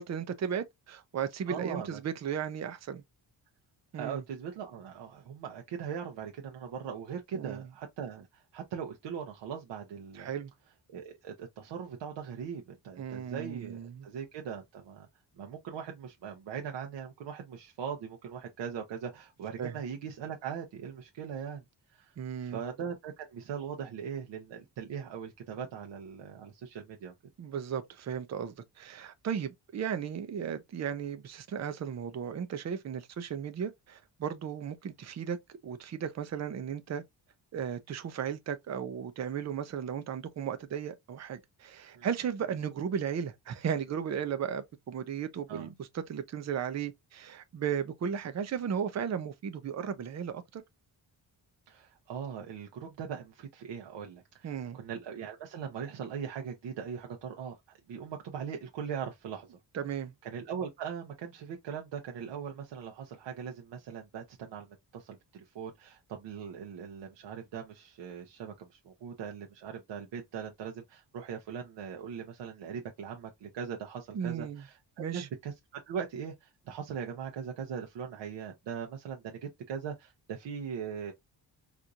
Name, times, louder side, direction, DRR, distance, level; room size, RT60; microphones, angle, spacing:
voice 1, 0.0-3.0 3.9-4.2 7.3-7.6 10.2-10.5 13.0-14.1 19.6-19.7 22.2-22.6 27.4-37.0 37.5-50.6 54.4-54.8 59.7-60.1 74.1-74.6 75.0-75.3, right 8 dB, 40° right, 0.6 m, -35 dB
voice 2, 1.5-2.0 3.9-10.3 10.9-15.1 15.4-21.6 21.9-22.1 22.4-27.1 41.9-42.1 45.5-45.7 51.7-57.6 57.9-59.6 60.2-81.1, right 7 dB, 85° right, 0.8 m, -40 dB
4.4 x 2.5 x 2.4 m
wide cardioid pair, 170°, 42 cm